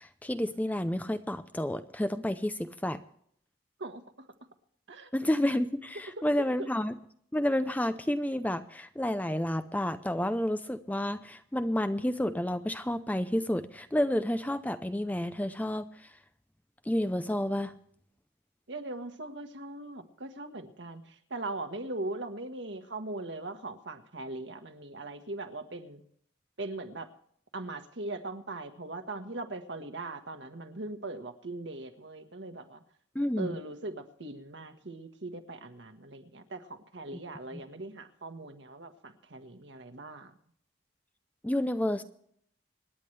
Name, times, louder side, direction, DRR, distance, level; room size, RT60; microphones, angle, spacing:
voice 1, 0.0-3.0 5.1-7.0 7.3-15.9 16.9-17.7 33.2-33.6 37.5-37.6 41.4-42.0, left 1 dB, 10° left, 11 dB, 0.5 m, -30 dB
voice 2, 18.7-26.0 26.6-27.1 27.5-32.8 33.4-40.3, right 2 dB, 70° right, 6 dB, 1.5 m, -40 dB
26.0 x 10.5 x 3.3 m, 0.66 s
head